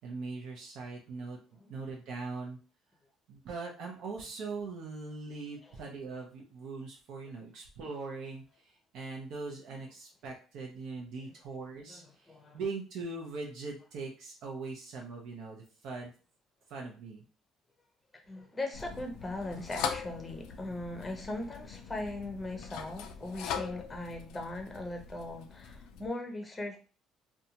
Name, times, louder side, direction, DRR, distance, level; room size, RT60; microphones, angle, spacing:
voice 1, 0.0-1.4 1.7-2.6 3.3-16.1 16.7-17.2, right 4 dB, 70° right, -1 dB, 0.5 m, -41 dB
voice 2, 11.8-12.6 18.2-26.8, left 2 dB, 15° left, 3 dB, 0.6 m, -39 dB
sound 1, 18.7-26.1, left 7 dB, 85° left, 0.3 m, -41 dB
2.6 x 2.2 x 2.8 m, 0.38 s
cardioid pair, 125°, 0 cm